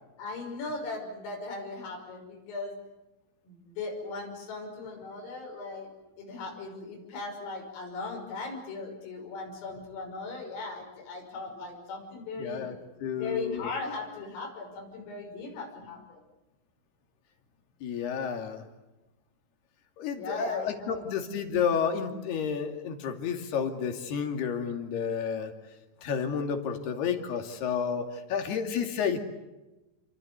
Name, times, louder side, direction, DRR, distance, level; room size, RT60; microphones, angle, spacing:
voice 1, 0.2-2.7 3.5-5.9 6.2-12.7 13.1-16.2 20.1-21.1, left 3 dB, 85° left, 2 dB, 8.6 m, -38 dB
voice 2, 12.4-12.8 13.0-13.7 17.8-18.6 20.0-25.5 26.0-29.2, left 7 dB, 55° left, 5 dB, 4.3 m, -31 dB
29.5 x 24.5 x 8.2 m, 1.0 s
omnidirectional pair, 5.8 m